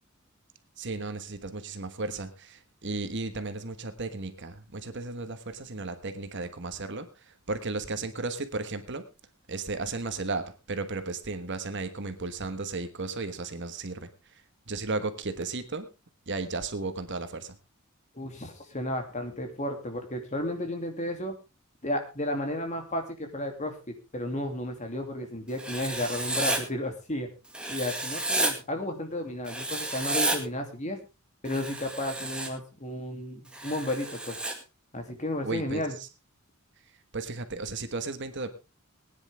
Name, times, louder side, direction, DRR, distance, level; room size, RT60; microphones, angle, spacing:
voice 1, 0.8-9.1 9.5-14.4 14.7-15.9 16.3-17.6 35.4-36.1 37.1-38.5, right 3 dB, 55° right, 9 dB, 1.4 m, -34 dB
voice 2, 18.1-21.3 21.8-27.3 27.7-31.0 31.4-34.4 34.9-35.9, left 1 dB, 35° left, 4 dB, 2.7 m, -33 dB
Writing, 25.6-26.6 27.5-28.5 29.5-30.4 31.4-32.5 33.5-34.5, right 2 dB, 5° right, 2.0 m, -31 dB
20.0 x 10.0 x 3.5 m, 0.29 s
head